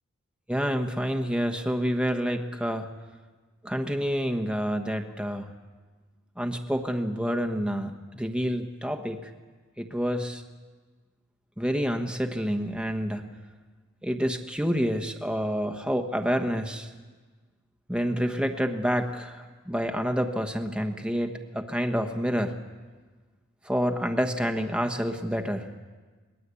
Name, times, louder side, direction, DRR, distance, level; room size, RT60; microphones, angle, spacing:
voice 1, 0.5-2.9 3.6-5.5 6.4-9.3 9.8-10.4 11.6-13.3 14.0-16.9 17.9-22.6 23.6-25.7, equal, 5° right, 5 dB, 1.2 m, -28 dB
22.5 x 20.0 x 8.4 m, 1.4 s
head